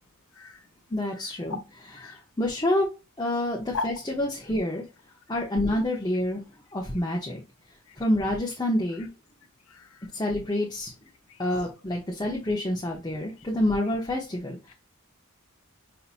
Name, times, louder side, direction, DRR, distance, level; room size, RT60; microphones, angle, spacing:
voice 1, 0.3-0.6 1.1-1.4 1.9-2.2 3.7-3.9 5.3-5.5 7.9-8.0 8.9-9.1 9.7-10.1 11.6-11.7, left 4 dB, 85° left, 0.8 m, -37 dB
voice 2, 0.9-1.6 2.4-2.9 3.2-4.8 5.3-6.4 6.7-7.4 8.0-9.1 10.1-10.9 11.4-14.7, left 1 dB, 20° left, 0.9 m, -27 dB
5.5 x 2.8 x 2.5 m
head